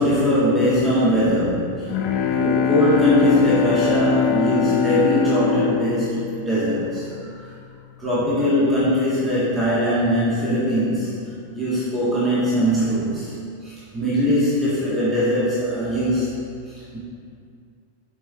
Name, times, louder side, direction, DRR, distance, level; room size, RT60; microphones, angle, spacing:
voice 1, 0.0-1.9 2.3-7.5 8.0-13.3 13.6-17.0, equal, 15° right, -10 dB, 1.6 m, -21 dB
Bowed string instrument, 1.5-7.0, left 7 dB, 40° left, 0.6 m, -23 dB
7.1 x 4.8 x 3.6 m, 2.3 s
figure-of-eight pair, 90°, 0 cm